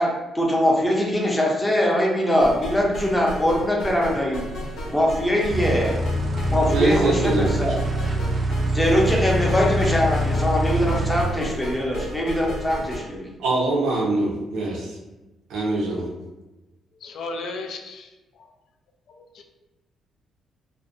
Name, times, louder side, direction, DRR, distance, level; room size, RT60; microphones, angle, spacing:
voice 1, 0.0-4.5 4.9-6.0 6.5-7.8 8.7-13.3, equal, 10° left, -2 dB, 0.5 m, -22 dB
sound 1, 2.4-13.0, equal, 85° left, 0.8 m, -34 dB
sound 2, 5.5-11.2, right 1 dB, 40° right, 0.3 m, -24 dB
voice 2, 6.7-7.5 13.4-15.0 15.5-16.0, right 2 dB, 80° right, -2 dB, 0.6 m, -23 dB
voice 3, 17.0-18.5 19.1-19.4, left 3 dB, 70° left, 4 dB, 0.3 m, -35 dB
2.5 x 2.0 x 2.5 m, 1.1 s
cardioid pair, 90°, 0 cm